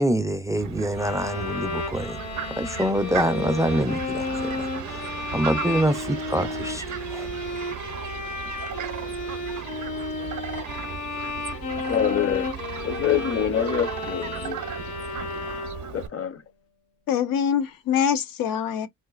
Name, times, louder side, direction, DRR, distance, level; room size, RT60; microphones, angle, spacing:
voice 1, 0.0-2.2 2.6-4.9 5.3-7.3, right 1 dB, 10° right, 0.3 m, -25 dB
Fowl, 0.6-16.1, right 9 dB, 60° right, 0.6 m, -36 dB
sound 1, 0.9-16.1, left 3 dB, 70° left, 2.0 m, -33 dB
voice 2, 11.8-14.6 15.9-16.4, left 9 dB, 45° left, 0.7 m, -26 dB
voice 3, 17.1-18.9, left 8 dB, 90° left, 0.7 m, -24 dB
3.8 x 2.5 x 2.3 m
cardioid pair, 125°, 34 cm